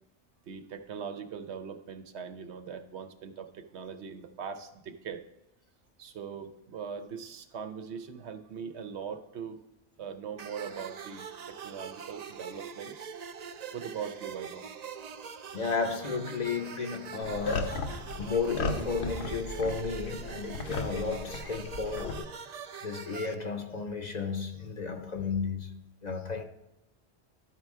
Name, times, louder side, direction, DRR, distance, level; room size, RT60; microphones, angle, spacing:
voice 1, 0.5-5.2 6.0-9.6 10.0-13.1 13.7-14.7, right 6 dB, 85° right, 1.0 m, -41 dB
sound 1, 10.4-23.3, right 6 dB, 55° right, 0.5 m, -43 dB
voice 2, 15.5-17.8 18.2-22.1 22.8-26.4, left 4 dB, 45° left, 0.7 m, -33 dB
sound 2, 17.2-22.2, left 3 dB, 80° left, 1.1 m, -36 dB
13.0 x 4.5 x 3.5 m
omnidirectional pair, 1.1 m